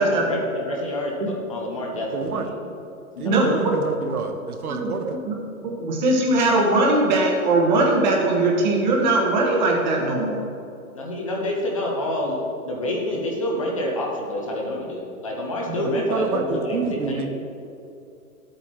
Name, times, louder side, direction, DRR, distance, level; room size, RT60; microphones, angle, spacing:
voice 1, 0.0-2.6 3.1-3.9 10.9-17.3, left 1 dB, 25° left, -1 dB, 0.7 m, -28 dB
voice 2, 2.1-2.5 3.2-5.2 15.8-17.3, right 5 dB, 85° right, 5 dB, 1.2 m, -28 dB
voice 3, 3.2-3.7 4.7-5.4 5.6-10.4, right 2 dB, 30° right, -1 dB, 1.4 m, -20 dB
12.5 x 8.1 x 3.0 m, 2.6 s
hypercardioid pair, 165°, 43 cm